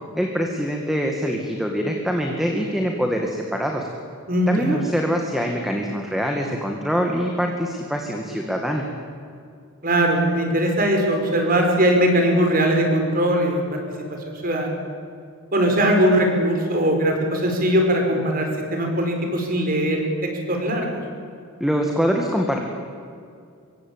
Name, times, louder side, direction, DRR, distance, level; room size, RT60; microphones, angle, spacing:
voice 1, 0.2-3.9 4.5-8.9 21.6-22.6, equal, ahead, 1 dB, 2.0 m, -24 dB
voice 2, 4.3-4.8 9.8-13.8 14.1-14.8 15.5-21.0, right 1 dB, 40° right, 3 dB, 5.5 m, -20 dB
25.5 x 23.0 x 8.9 m, 2.4 s
head